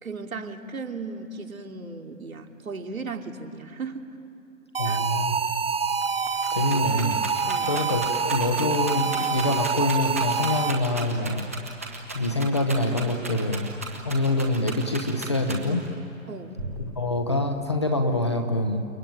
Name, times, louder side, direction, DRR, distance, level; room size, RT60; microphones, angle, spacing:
voice 1, 0.0-4.1 4.8-5.0 7.5-7.8 16.3-16.6, right 4 dB, 85° right, 4 dB, 3.0 m, -36 dB
sound 1, 4.7-11.0, right 5 dB, 45° right, 0.7 m, -27 dB
voice 2, 4.8-5.4 6.5-7.2 7.7-11.5 12.1-13.7 14.0-15.8 16.9-18.9, left 1 dB, 20° left, 6 dB, 0.9 m, -25 dB
Rattle, 6.0-15.9 16.6-17.2, right 3 dB, 10° right, 1.0 m, -37 dB
29.5 x 21.5 x 9.1 m, 2.9 s
hypercardioid pair, 180°, 41 cm